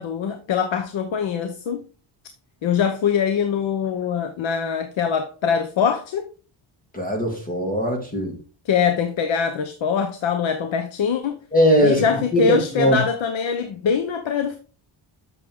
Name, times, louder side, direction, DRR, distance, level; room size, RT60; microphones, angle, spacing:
voice 1, 0.0-1.8 2.6-6.3 8.7-11.4 11.8-14.6, left 6 dB, 70° left, 0.9 m, -23 dB
voice 2, 6.9-8.3 11.5-13.0, equal, 15° left, 1.9 m, -20 dB
8.5 x 6.6 x 3.6 m
wide cardioid pair, 180°, 48 cm